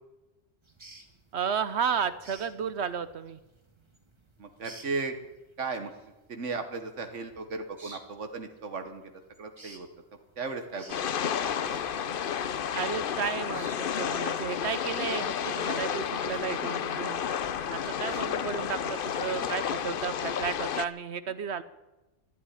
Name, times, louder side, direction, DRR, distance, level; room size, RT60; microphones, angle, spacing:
sound 1, 0.6-20.1, right 2 dB, 25° right, 1.7 m, -56 dB
voice 1, 1.3-3.4 12.7-17.2 17.7-21.6, right 7 dB, 70° right, 13 dB, 1.0 m, -33 dB
voice 2, 4.4-5.1 5.6-5.9 6.3-9.9 10.4-11.1 11.3-11.8 16.6-16.7 19.4-19.5, right 4 dB, 85° right, 7 dB, 1.6 m, -36 dB
sound 2, 10.9-20.9, left 8 dB, 55° left, 0.8 m, -31 dB
13.0 x 11.0 x 10.0 m, 1.1 s
omnidirectional pair, 1.2 m